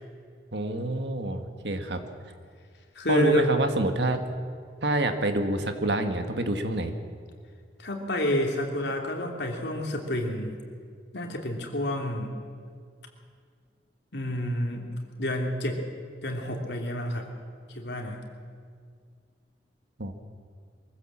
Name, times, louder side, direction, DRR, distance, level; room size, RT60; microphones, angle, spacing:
voice 1, 0.5-2.0 3.1-4.2 4.8-6.9 20.0-20.1, right 2 dB, 70° right, 7 dB, 1.7 m, -27 dB
voice 2, 2.9-3.5 7.8-10.5 11.1-12.3 14.1-14.9 15.2-15.8 16.2-17.2 17.7-18.2, left 1 dB, 70° left, 2 dB, 2.9 m, -29 dB
23.0 x 15.5 x 7.4 m, 2.1 s
head